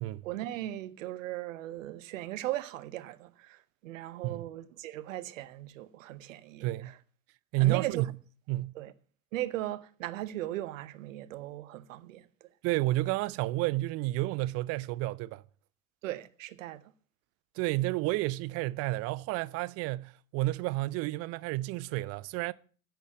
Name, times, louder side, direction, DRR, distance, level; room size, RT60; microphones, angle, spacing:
voice 1, 0.2-7.0 7.6-8.1 8.7-8.9 9.3-12.5 16.0-16.8, right 14 dB, 65° right, 1.0 m, -38 dB
voice 2, 6.6-6.9 7.5-8.1 8.5-8.7 12.6-15.4 17.6-22.5, right 18 dB, 35° right, 0.5 m, -30 dB
10.5 x 6.9 x 7.1 m
figure-of-eight pair, 80°, 43 cm